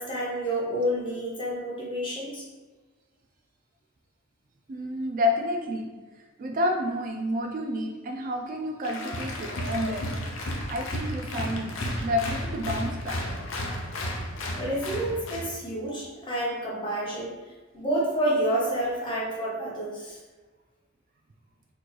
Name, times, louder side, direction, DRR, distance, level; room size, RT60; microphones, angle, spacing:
voice 1, 0.0-2.5 14.1-14.3 14.6-17.3 17.7-20.2, right 1 dB, 25° left, -4 dB, 0.9 m, -29 dB
voice 2, 4.7-6.0 6.4-10.1 10.7-13.2, left 1 dB, 40° right, 3 dB, 0.3 m, -30 dB
Applause, 8.8-15.5, left 1 dB, 65° left, 0.6 m, -33 dB
4.2 x 2.9 x 3.1 m, 1.3 s
head